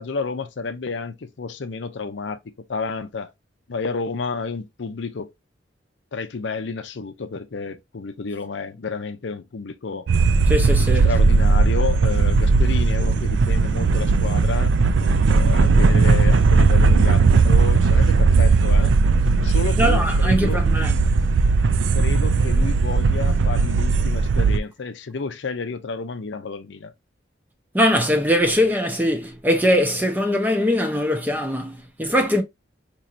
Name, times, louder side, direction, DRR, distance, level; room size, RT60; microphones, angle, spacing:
voice 1, 0.0-2.4 2.7-3.3 3.7-5.3 6.1-10.1 11.0-14.7 15.3-18.9 19.4-20.6 21.9-26.9, left 4 dB, 70° left, 0.6 m, -30 dB
sound 1, 10.1-24.6, right 4 dB, 80° right, 0.4 m, -17 dB
voice 2, 10.5-11.1 19.8-20.9 27.7-32.4, equal, 10° right, 0.7 m, -21 dB
4.3 x 3.0 x 2.5 m
head